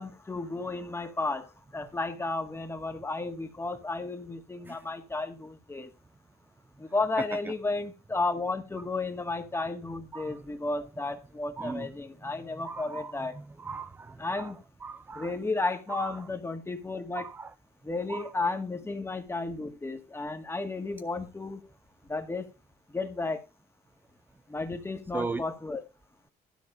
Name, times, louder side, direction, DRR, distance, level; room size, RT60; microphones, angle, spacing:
voice 1, 0.0-1.5 1.7-5.9 6.8-13.4 14.2-14.6 15.2-17.3 17.8-21.6 22.1-22.5 22.9-23.4 24.5-25.8, left 3 dB, 15° left, 1.8 m, -33 dB
voice 2, 7.2-7.5 10.1-10.4 11.6-11.9 12.6-15.4 15.9-16.3 17.1-17.5 18.1-18.3 25.1-25.5, right 4 dB, 10° right, 0.4 m, -38 dB
12.5 x 4.2 x 6.4 m
cardioid pair, 110°, 17 cm